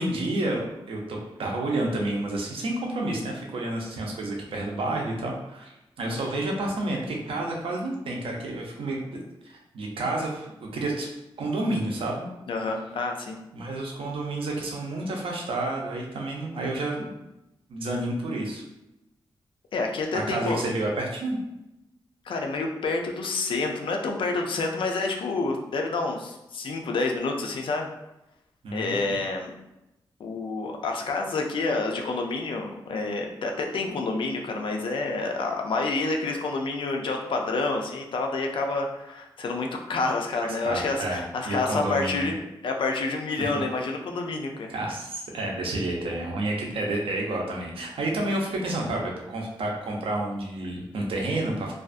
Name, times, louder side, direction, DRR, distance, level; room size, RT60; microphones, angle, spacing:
voice 1, 0.0-5.7 6.0-9.2 9.5-10.5 10.7-11.1 11.4-12.3 13.5-17.1 17.7-18.6 20.1-21.4 28.6-29.2 40.6-41.2 41.5-42.3 43.4-43.5 44.7-51.7, right 2 dB, 85° right, 0 dB, 0.6 m, -30 dB
voice 2, 12.5-13.4 19.7-20.6 22.3-27.9 28.7-29.5 30.2-42.4 42.6-44.7, left 3 dB, 70° left, 2 dB, 0.4 m, -28 dB
2.4 x 2.3 x 2.4 m, 0.91 s
wide cardioid pair, 125°, 9 cm